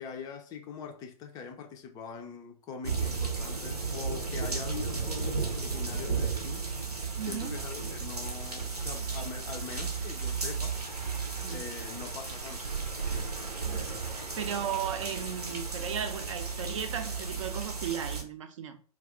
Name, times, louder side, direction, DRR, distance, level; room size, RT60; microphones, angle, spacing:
voice 1, 0.0-11.2 11.5-12.7, left 6 dB, 20° left, 0.4 m, -43 dB
sound 1, 2.8-18.2, right 5 dB, 85° right, 0.7 m, -34 dB
voice 2, 7.2-7.6 11.4-11.7 14.4-18.8, right 9 dB, 55° right, 0.5 m, -35 dB
2.3 x 2.3 x 3.6 m
figure-of-eight pair, 110°, 19 cm